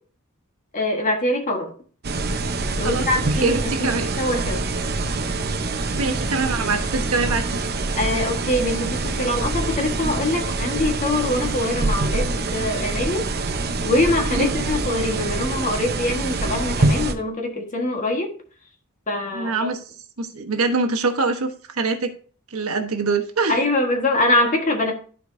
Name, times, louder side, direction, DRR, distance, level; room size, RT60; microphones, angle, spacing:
voice 1, 0.7-1.7 2.6-4.6 7.9-13.3 13.8-18.3 19.1-19.5 23.5-24.9, left 2 dB, 35° left, 3 dB, 1.5 m, -23 dB
sound 1, 2.0-17.1, right 3 dB, 50° right, 0.8 m, -25 dB
voice 2, 2.8-4.1 6.0-7.7 14.3-14.5 19.3-19.8 20.2-22.1 22.5-23.6, right 3 dB, 75° right, 5 dB, 1.2 m, -24 dB
13.5 x 4.6 x 2.7 m, 0.43 s
head